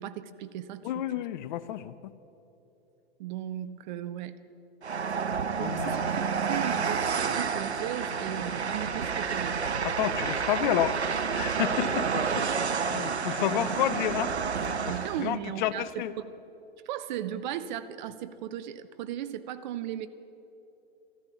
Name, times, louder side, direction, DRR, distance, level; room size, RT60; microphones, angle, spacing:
voice 1, 0.0-1.0 3.2-4.4 5.6-9.6 14.9-15.9 16.2-16.3 16.8-20.1, right 11 dB, 45° right, 13 dB, 0.8 m, -36 dB
voice 2, 0.8-2.1 5.6-6.1 9.8-14.4 15.2-16.1, left 11 dB, 45° left, 15 dB, 0.7 m, -30 dB
Train, 4.8-15.3, right 6 dB, 90° right, 0.7 m, -30 dB
13.0 x 13.0 x 7.1 m, 2.9 s
figure-of-eight pair, 105°, 32 cm